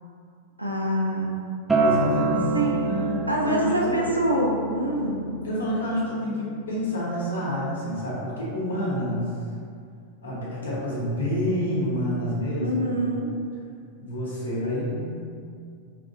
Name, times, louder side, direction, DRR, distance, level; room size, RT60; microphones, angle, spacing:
voice 1, 0.6-1.3 2.5-2.9 3.3-5.3 12.6-13.3, right 1 dB, 85° right, -2 dB, 0.3 m, -25 dB
Acoustic guitar, 1.7-6.9, right 3 dB, 10° right, 0.3 m, -28 dB
voice 2, 1.8-4.0 5.4-9.2 10.2-13.0 14.0-15.2, equal, 70° left, -7 dB, 0.7 m, -28 dB
2.7 x 2.2 x 2.4 m, 2.3 s
figure-of-eight pair, 90°, 0 cm